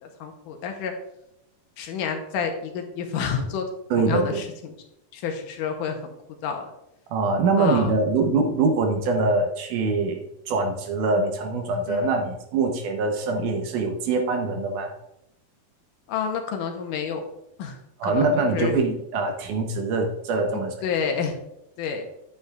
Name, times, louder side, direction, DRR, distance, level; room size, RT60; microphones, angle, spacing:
voice 1, 0.0-0.9 1.8-3.7 4.0-4.7 5.1-6.0 6.4-6.7 7.6-7.9 11.9-12.1 16.1-17.3 17.6-17.8 18.0-18.7 20.8-21.4 21.8-22.0, left 6 dB, 75° left, 4 dB, 2.3 m, -29 dB
voice 2, 3.9-4.4 7.1-14.9 18.0-20.7, right 3 dB, 70° right, 3 dB, 2.2 m, -23 dB
9.7 x 9.2 x 2.3 m, 0.83 s
omnidirectional pair, 4.1 m